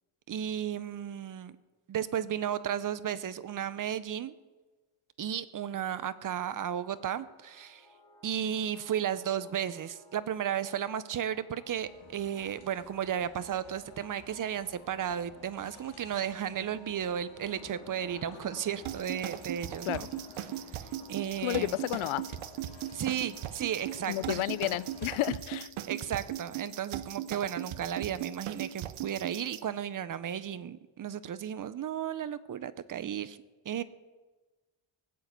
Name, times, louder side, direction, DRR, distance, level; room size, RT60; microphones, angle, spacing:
voice 1, 0.3-1.6 1.9-4.3 5.2-7.9 8.2-20.1 20.7-21.8 22.9-24.5 25.9-33.4 33.6-33.8, right 9 dB, 40° right, 15 dB, 0.6 m, -34 dB
sound 1, 6.5-25.2, left 1 dB, 5° left, 5.6 m, -58 dB
sound 2, 11.7-25.1, left 6 dB, 55° left, 2.0 m, -54 dB
sound 3, 18.9-29.6, right 12 dB, 80° right, 0.8 m, -38 dB
voice 2, 21.4-22.3 24.1-25.7, left 17 dB, 85° left, 19 dB, 0.6 m, -31 dB
18.5 x 8.3 x 8.0 m, 1.3 s
wide cardioid pair, 160°, 48 cm